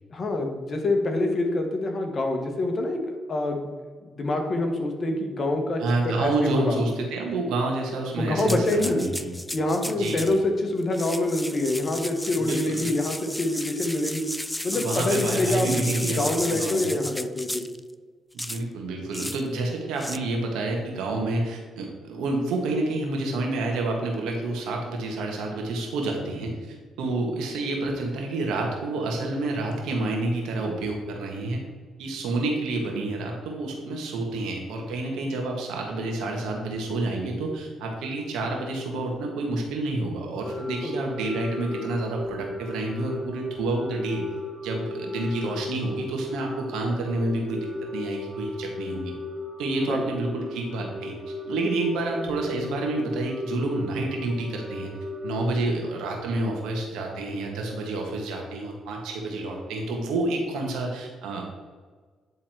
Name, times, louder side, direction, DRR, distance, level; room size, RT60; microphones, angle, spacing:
voice 1, 0.1-3.7 4.0-6.8 8.2-9.1 9.5-14.3 14.6-17.7 40.8-41.0 49.8-50.0, left 2 dB, 45° left, 4 dB, 1.3 m, -26 dB
voice 2, 5.8-9.3 9.9-10.3 12.4-12.9 14.7-17.0 18.3-31.6 32.0-44.3 44.6-49.1 49.6-54.9 55.2-61.4, right 2 dB, 90° right, 1 dB, 1.7 m, -29 dB
sound 1, 8.4-10.4 10.8-17.8 18.4-18.6 19.1-19.4 20.0-20.2, left 1 dB, 5° left, 0.3 m, -34 dB
sound 2, 40.3-55.4, left 2 dB, 20° right, 2.1 m, -36 dB
9.5 x 3.8 x 4.6 m, 1.4 s
cardioid pair, 90°, 0 cm